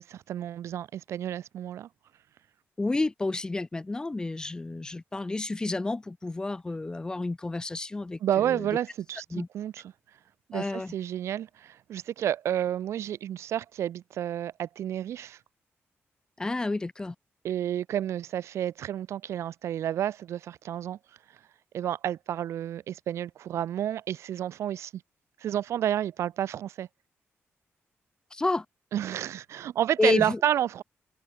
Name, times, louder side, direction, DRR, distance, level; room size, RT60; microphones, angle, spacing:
voice 1, 0.0-1.9 8.2-9.8 10.5-15.4 17.4-21.0 21.7-24.9 25.4-26.9 28.9-30.8, right 11 dB, 90° right, 0.4 m, -30 dB
voice 2, 2.8-8.7 9.3-9.5 10.5-10.9 16.4-17.1 28.3-28.6 30.0-30.4, left 2 dB, 15° left, 0.6 m, -30 dB
wide cardioid pair, 145°, 5 cm